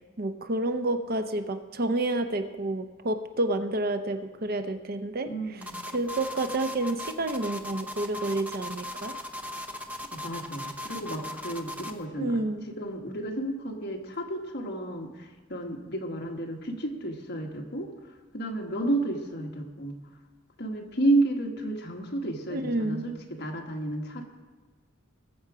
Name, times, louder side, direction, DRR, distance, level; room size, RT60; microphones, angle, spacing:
voice 1, 0.2-5.3 5.9-9.2 12.2-12.7 22.5-23.1, right 2 dB, 45° right, 8 dB, 0.7 m, -29 dB
voice 2, 5.2-5.8 10.1-15.1 15.5-17.9 18.3-20.0 20.6-24.2, right 2 dB, 50° left, 1 dB, 1.6 m, -31 dB
sound 1, 5.6-12.0, left 1 dB, 5° right, 0.7 m, -38 dB
20.0 x 7.0 x 4.9 m, 1.3 s
head